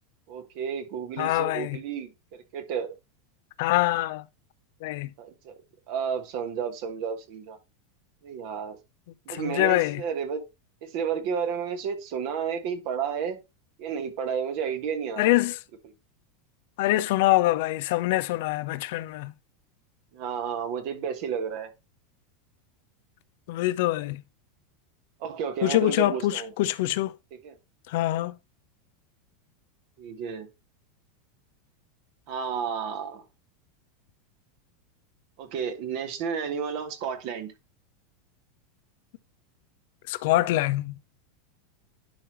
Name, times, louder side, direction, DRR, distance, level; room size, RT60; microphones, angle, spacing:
voice 1, 0.3-3.0 5.2-5.6 5.9-7.6 8.2-8.8 9.3-10.4 10.8-13.4 13.8-15.4 20.1-21.7 25.2-26.5 27.4-27.6 30.0-30.5 32.3-33.2 35.4-37.5, right 7 dB, 50° right, 1.4 m, -32 dB
voice 2, 1.2-1.8 3.6-4.2 4.8-5.1 9.3-10.0 15.2-15.6 16.8-19.3 23.5-24.2 25.6-27.1 27.9-28.4 40.1-41.0, left 16 dB, 55° left, 0.5 m, -24 dB
10.5 x 4.4 x 3.1 m
figure-of-eight pair, 85°, 0 cm